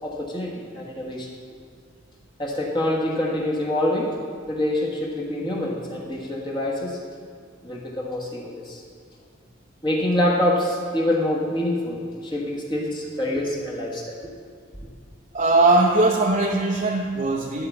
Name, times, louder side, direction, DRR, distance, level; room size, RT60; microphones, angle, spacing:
voice 1, 0.0-1.3 2.4-4.2 4.5-7.0 7.6-8.8 9.8-14.2, left 1 dB, 25° left, -3 dB, 1.4 m, -26 dB
voice 2, 15.3-17.7, right 2 dB, 40° right, -1 dB, 0.7 m, -20 dB
11.5 x 4.7 x 8.0 m, 2.2 s
head